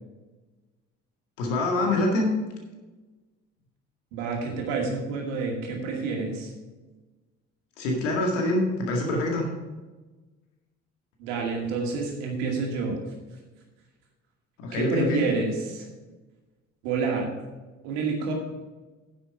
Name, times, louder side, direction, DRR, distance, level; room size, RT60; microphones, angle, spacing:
voice 1, 1.4-2.3 7.8-9.5 14.6-15.3, left 2 dB, 75° left, 1 dB, 2.1 m, -25 dB
voice 2, 4.1-6.5 11.2-13.0 14.7-15.9 16.8-17.3 17.8-18.3, right 4 dB, 70° right, 0 dB, 2.4 m, -28 dB
10.0 x 7.6 x 4.8 m, 1.2 s
figure-of-eight pair, 45°, 37 cm